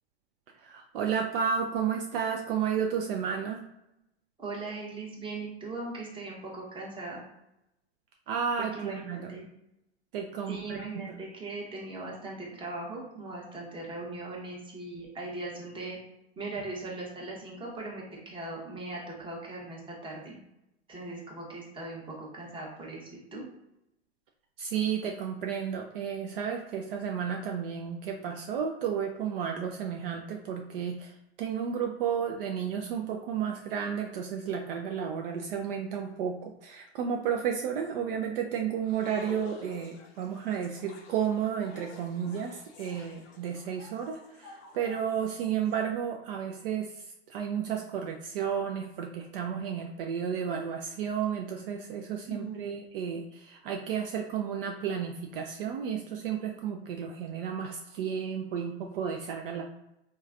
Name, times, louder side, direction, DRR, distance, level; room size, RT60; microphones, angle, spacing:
voice 1, 0.5-3.6 8.3-9.3 10.1-10.8 11.1-11.2 24.6-59.6, right 7 dB, 55° right, 3 dB, 0.4 m, -32 dB
voice 2, 4.4-7.2 8.6-9.5 10.5-16.0 16.4-20.4 20.9-23.4 52.3-52.8, right 2 dB, 15° right, -2 dB, 0.9 m, -39 dB
sound 1, 38.8-45.8, left 4 dB, 35° left, 0.5 m, -49 dB
3.1 x 2.2 x 2.4 m, 0.86 s
hypercardioid pair, 110°, 33 cm